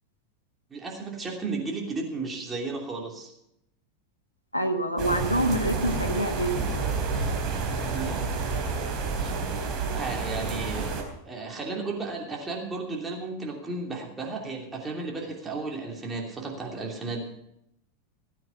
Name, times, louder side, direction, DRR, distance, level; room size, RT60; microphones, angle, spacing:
voice 1, 0.7-3.3 7.8-8.3 9.1-9.3 9.9-10.9 11.2-17.2, right 3 dB, 15° right, -1 dB, 3.0 m, -34 dB
voice 2, 4.5-6.9, right 1 dB, 90° left, 5 dB, 1.5 m, -26 dB
sound 1, 5.0-11.0, right 4 dB, 35° right, 3.7 m, -29 dB
17.5 x 9.3 x 5.8 m, 0.80 s
figure-of-eight pair, 85°, 0 cm